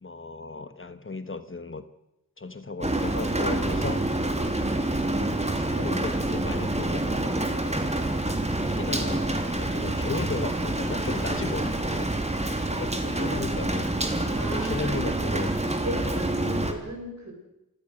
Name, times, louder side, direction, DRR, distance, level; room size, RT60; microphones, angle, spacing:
voice 1, 0.0-1.9 2.4-4.0 5.6-7.8 8.5-12.1 12.7-15.5, left 3 dB, 35° left, 11 dB, 1.3 m, -35 dB
Rain, 2.8-16.7, right 1 dB, 20° right, 2.9 m, -27 dB
voice 2, 5.0-5.4 14.3-15.1 15.8-17.3, equal, 55° right, 2 dB, 7.0 m, -36 dB
27.0 x 18.0 x 6.5 m, 0.91 s
wide cardioid pair, 85°, 34 cm